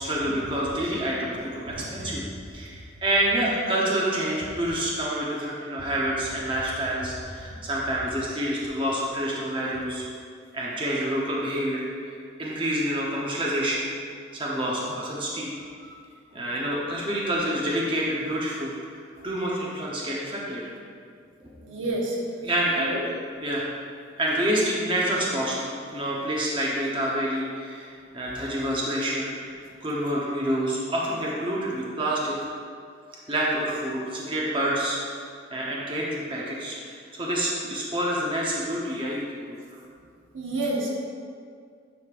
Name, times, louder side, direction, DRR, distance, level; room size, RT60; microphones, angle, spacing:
voice 1, 0.0-2.2 2.5-10.0 10.5-13.9 14.3-15.5 16.3-18.8 19.2-20.7 21.4-21.5 22.4-23.1 23.4-23.7 24.2-29.5 29.8-32.4 33.3-39.6, right 1 dB, 25° right, -5 dB, 0.8 m, -28 dB
voice 2, 21.6-22.2 22.8-23.0 40.3-40.9, right 2 dB, 85° right, -2 dB, 1.2 m, -29 dB
9.8 x 5.2 x 2.5 m, 2.2 s
head